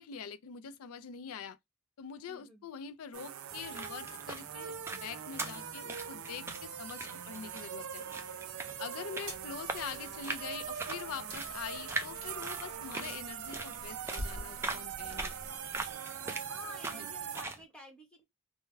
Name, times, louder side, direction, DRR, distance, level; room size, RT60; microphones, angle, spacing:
voice 1, 0.0-1.6 2.0-8.0 8.8-15.3 16.9-17.1, left 7 dB, 85° left, 0.4 m, -44 dB
voice 2, 2.3-2.7 9.0-9.2 16.4-18.2, left 1 dB, 5° left, 1.0 m, -51 dB
sound 1, 3.1-17.4, right 9 dB, 80° right, 0.4 m, -42 dB
sound 2, 3.5-17.6, right 2 dB, 10° right, 0.3 m, -43 dB
sound 3, 9.2-15.9, equal, 55° right, 1.6 m, -48 dB
3.4 x 2.1 x 3.2 m
head